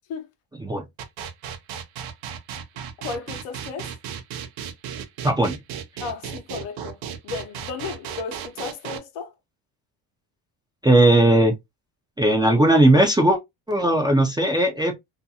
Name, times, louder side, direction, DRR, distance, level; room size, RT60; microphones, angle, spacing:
sound 1, 1.0-9.0, right 8 dB, 75° right, 0.6 m, -34 dB
voice 1, 3.0-4.0 6.0-7.0 7.2-9.3, left 5 dB, 75° left, 0.8 m, -34 dB
voice 2, 5.2-5.6 10.8-11.5 12.2-13.4 13.7-15.0, right 1 dB, 10° right, 0.4 m, -17 dB
2.4 x 2.2 x 2.6 m
cardioid pair, 100°, 48 cm